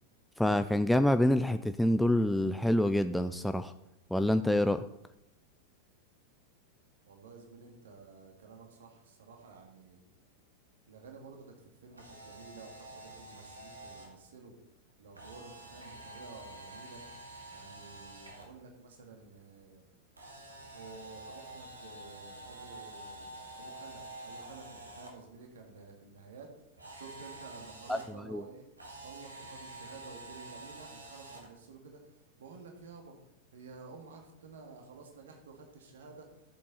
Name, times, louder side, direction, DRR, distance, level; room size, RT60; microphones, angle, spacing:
voice 1, 0.4-3.7 4.1-4.8 27.9-28.0 28.3-28.4, left 1 dB, 5° left, 10 dB, 0.4 m, -26 dB
voice 2, 7.1-10.0 10.9-14.5 15.0-17.0 17.5-19.9 20.7-26.5 26.9-28.7 29.0-33.2 33.5-36.3, right 4 dB, 60° right, 3 dB, 2.0 m, -52 dB
Camera, 11.9-14.1 15.2-18.5 20.2-25.1 26.8-28.0 28.8-31.5, right 1 dB, 80° right, 2.4 m, -48 dB
14.5 x 7.7 x 4.1 m, 0.87 s
figure-of-eight pair, 90°, 0 cm